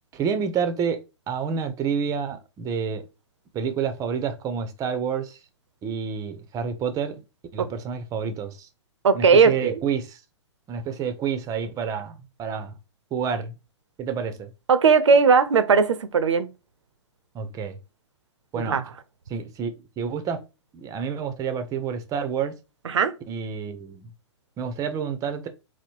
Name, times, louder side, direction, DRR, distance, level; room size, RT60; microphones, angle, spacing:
voice 1, 0.1-3.1 3.5-5.4 5.8-7.2 7.5-8.7 9.1-10.2 10.7-12.7 13.1-13.5 14.0-14.5 17.3-17.8 18.5-18.8 19.3-20.4 20.7-22.6 23.3-24.1 24.6-25.5, right 6 dB, 20° right, 0.7 m, -29 dB
voice 2, 9.0-9.8 14.7-16.5 18.6-18.8 22.8-23.1, right 5 dB, 75° right, 0.7 m, -18 dB
4.0 x 2.1 x 4.5 m
hypercardioid pair, 120°, 15 cm